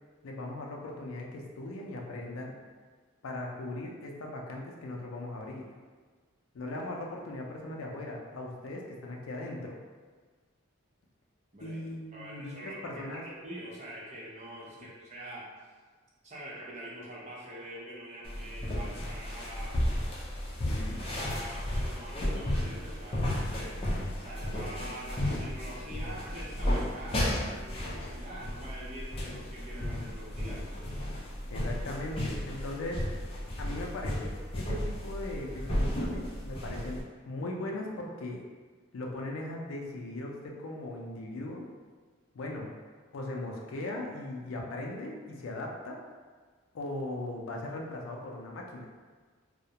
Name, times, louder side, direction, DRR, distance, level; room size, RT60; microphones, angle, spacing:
voice 1, 0.2-2.6 3.2-5.7 6.5-9.8 11.6-13.2 14.8-14.9 20.6-21.0 31.5-33.1 33.6-38.4 38.9-41.6 42.3-42.7 43.1-46.0 46.7-48.8, left 2 dB, 85° left, 0 dB, 0.4 m, -39 dB
voice 2, 12.1-12.9 13.2-15.7 16.2-19.8 20.9-23.7 24.2-31.0, right 1 dB, 35° right, -5 dB, 0.5 m, -45 dB
sound 1, 18.2-37.0, left 1 dB, 30° left, 0.5 m, -33 dB
2.3 x 2.1 x 2.7 m, 1.5 s
head